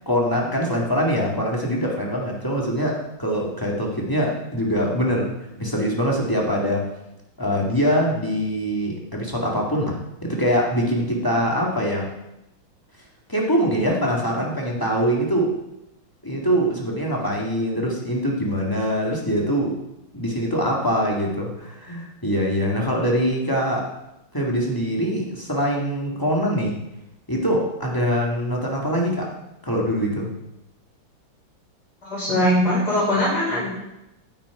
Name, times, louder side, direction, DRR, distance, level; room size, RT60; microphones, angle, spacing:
voice 1, 0.1-5.3 5.6-6.9 7.4-12.1 13.3-15.6 16.2-19.8 20.1-23.9 24.3-26.8 27.3-29.3 29.6-30.3, equal, 10° left, -2 dB, 1.8 m, -23 dB
voice 2, 32.0-33.7, left 1 dB, 50° left, -7 dB, 3.9 m, -21 dB
9.7 x 9.2 x 4.9 m, 0.87 s
omnidirectional pair, 2.2 m